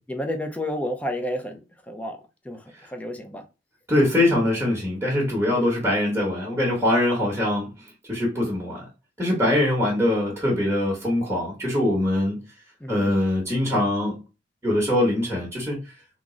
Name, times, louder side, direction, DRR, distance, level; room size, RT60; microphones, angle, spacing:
voice 1, 0.1-2.2 2.4-3.4 5.5-5.8 12.8-13.2, left 1 dB, 10° left, 0.5 m, -31 dB
voice 2, 3.9-8.9 9.2-12.4 12.9-14.2 14.6-15.9, left 1 dB, 15° right, 1.1 m, -23 dB
3.6 x 2.1 x 3.7 m
head